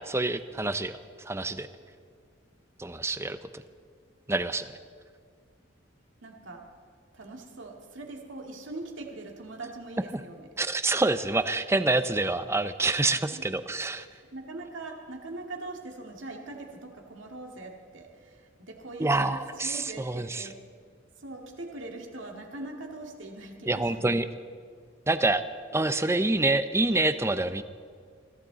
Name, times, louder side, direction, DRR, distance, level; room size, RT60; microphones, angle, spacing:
voice 1, 0.0-1.7 2.8-3.6 4.3-4.7 10.6-14.1 19.0-20.5 23.7-24.3 25.1-25.4 25.7-27.6, right 2 dB, 15° right, 12 dB, 0.5 m, -27 dB
voice 2, 6.2-6.7 7.1-10.5 13.3-13.5 14.1-20.6 21.2-24.2, right 2 dB, 85° right, 1 dB, 2.2 m, -42 dB
22.5 x 14.5 x 4.0 m, 2.1 s
head